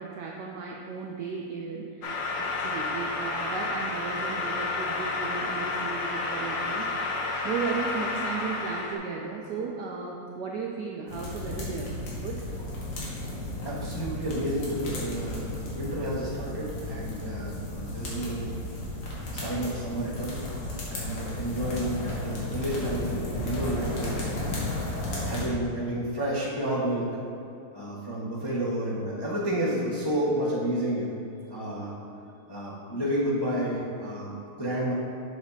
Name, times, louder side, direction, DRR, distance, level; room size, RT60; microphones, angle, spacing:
voice 1, 0.0-11.9 12.2-12.4, right 5 dB, 80° right, -1 dB, 0.9 m, -35 dB
sound 1, 2.0-9.0, left 3 dB, 65° left, 0.8 m, -30 dB
sound 2, 11.1-25.5, left 2 dB, 90° left, 2.4 m, -34 dB
voice 2, 13.6-18.5 19.3-20.4 20.9-24.7 25.2-27.1 27.7-31.1 31.5-31.9 32.5-34.9, right 1 dB, 35° left, -8 dB, 0.4 m, -30 dB
7.7 x 6.8 x 2.8 m, 2.7 s
omnidirectional pair, 2.4 m